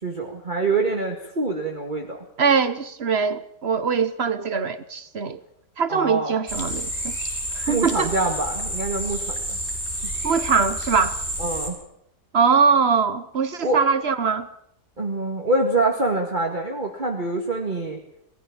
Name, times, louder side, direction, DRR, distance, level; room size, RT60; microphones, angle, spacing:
voice 1, 0.0-2.2 5.9-6.3 7.7-9.6 11.4-11.8 13.6-13.9 15.0-18.0, right 2 dB, 25° right, 2.0 m, -25 dB
voice 2, 2.4-5.4 5.8-7.2 7.5-8.1 10.2-11.2 12.3-14.5, right 5 dB, 45° right, 1.1 m, -22 dB
sound 1, 6.5-11.7, equal, 10° left, 4.6 m, -29 dB
20.5 x 14.5 x 8.7 m
omnidirectional pair, 1.9 m